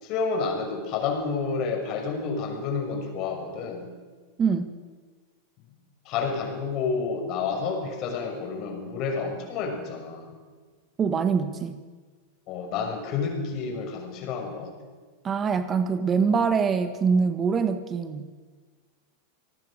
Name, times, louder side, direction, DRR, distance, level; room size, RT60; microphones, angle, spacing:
voice 1, 0.0-3.9 6.0-10.3 12.5-14.7, left 5 dB, 45° left, 4 dB, 6.2 m, -30 dB
voice 2, 11.0-11.8 15.2-18.4, right 5 dB, 25° right, 10 dB, 1.7 m, -24 dB
27.0 x 20.0 x 6.6 m, 1.4 s
hypercardioid pair, 95°, 0 cm